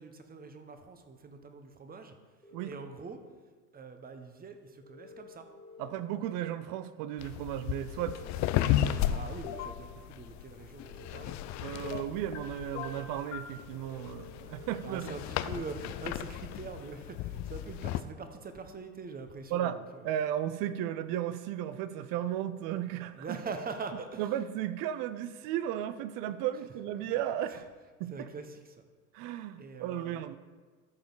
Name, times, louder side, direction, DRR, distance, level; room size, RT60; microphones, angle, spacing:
voice 1, 0.0-2.1 2.6-3.2 3.7-5.5 9.1-11.4 14.8-20.1 23.1-24.2 27.0-27.1 27.5-27.6 28.1-28.8 29.6-30.2, right 4 dB, 20° right, 7 dB, 1.0 m, -43 dB
sound 1, 2.4-2.8 4.8-5.8 7.8-8.8 10.8-11.8 13.8-14.8, left 3 dB, 10° left, 1.7 m, -52 dB
voice 2, 5.8-8.2 11.6-15.1 19.5-19.8 20.0-23.4 24.2-27.7 28.0-28.3 29.1-30.4, right 11 dB, 50° right, 13 dB, 0.6 m, -34 dB
sound 2, 7.2-18.0, left 12 dB, 45° left, 0.5 m, -35 dB
sound 3, 9.4-9.8 11.8-12.4 12.7-13.5, left 8 dB, 70° left, 1.4 m, -40 dB
13.5 x 5.1 x 4.0 m, 1.4 s
hypercardioid pair, 90°, 42 cm